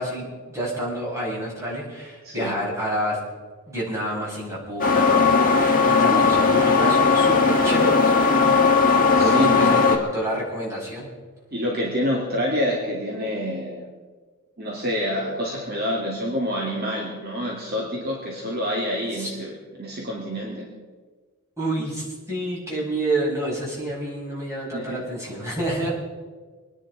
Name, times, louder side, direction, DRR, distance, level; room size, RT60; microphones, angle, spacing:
voice 1, 0.0-3.2 3.7-8.1 9.0-11.1 19.1-19.3 21.6-25.9, right 1 dB, 15° right, -6 dB, 5.7 m, -28 dB
voice 2, 2.2-2.6 9.2-9.7 11.5-13.9 14.6-20.7 24.7-25.0, equal, 45° right, -2 dB, 2.4 m, -27 dB
sound 1, 4.8-10.0, left 4 dB, 40° left, 1.8 m, -18 dB
24.5 x 10.5 x 4.8 m, 1.4 s
head